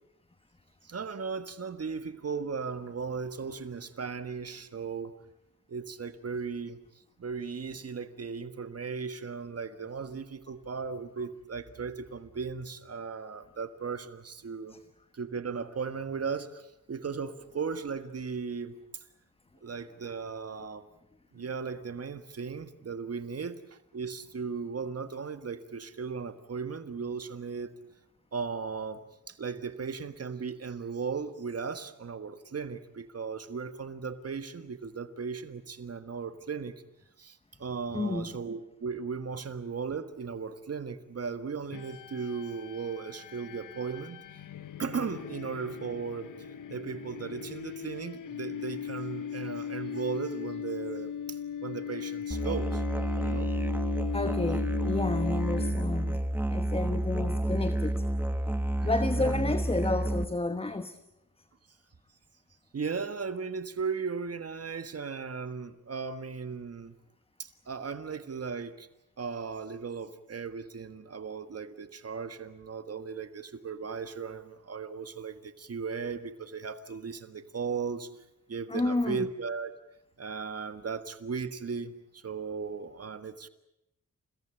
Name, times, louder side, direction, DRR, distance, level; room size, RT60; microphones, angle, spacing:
voice 1, 0.8-5.1 5.7-6.8 7.2-14.7 15.1-18.7 19.6-20.9 21.3-27.7 28.3-36.7 37.2-44.2 44.8-46.3 46.7-52.8 53.2-53.5 56.8-57.3 58.8-58.9 59.1-59.5 62.7-66.9 67.4-68.9 69.2-78.1 78.5-79.7 80.2-83.5, right 5 dB, 50° right, 10 dB, 1.6 m, -37 dB
voice 2, 37.9-38.3 54.1-58.1 58.8-61.0 78.7-79.3, left 2 dB, 20° left, 10 dB, 1.2 m, -31 dB
sound 1, 41.7-56.2, left 8 dB, 85° left, 1.0 m, -38 dB
Musical instrument, 52.3-60.2, right 1 dB, 5° right, 1.3 m, -30 dB
29.0 x 18.0 x 9.0 m, 0.85 s
wide cardioid pair, 110°, 31 cm